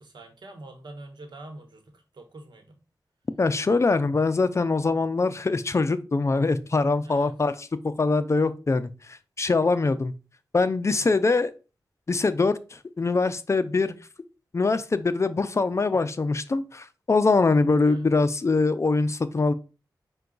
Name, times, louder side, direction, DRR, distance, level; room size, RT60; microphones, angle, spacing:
voice 1, 0.0-2.8 7.0-7.3 10.9-11.1 17.8-18.0, right 2 dB, 75° right, 5 dB, 1.0 m, -45 dB
voice 2, 3.4-8.9 9.4-10.1 10.5-11.5 12.1-14.0 14.5-19.5, left 3 dB, 40° left, 12 dB, 0.4 m, -23 dB
5.6 x 2.3 x 3.8 m, 0.32 s
cardioid pair, 65°, 8 cm